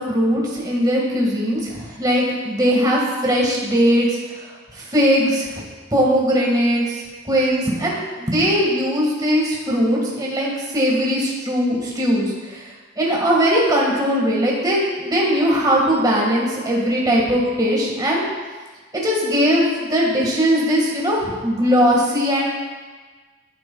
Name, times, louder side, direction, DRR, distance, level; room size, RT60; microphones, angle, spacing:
voice 1, 0.0-4.2 4.8-5.5 5.9-12.6 13.0-18.2 18.9-22.6, equal, 20° right, -3 dB, 1.7 m, -19 dB
11.5 x 8.8 x 2.3 m, 1.4 s
head